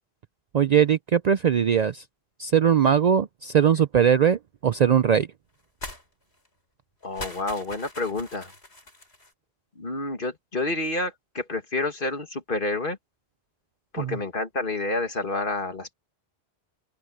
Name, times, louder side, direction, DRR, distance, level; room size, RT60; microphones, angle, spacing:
voice 1, 0.5-2.0 2.4-5.3 14.0-14.2, right 8 dB, 55° right, 0.5 m, -20 dB
sound 1, 5.8-6.0 6.3-6.5 7.0-9.3, left 2 dB, 85° left, 6.4 m, -41 dB
voice 2, 7.0-8.5 9.8-13.0 13.9-15.9, left 2 dB, 55° left, 2.3 m, -29 dB
open air
omnidirectional pair, 1.0 m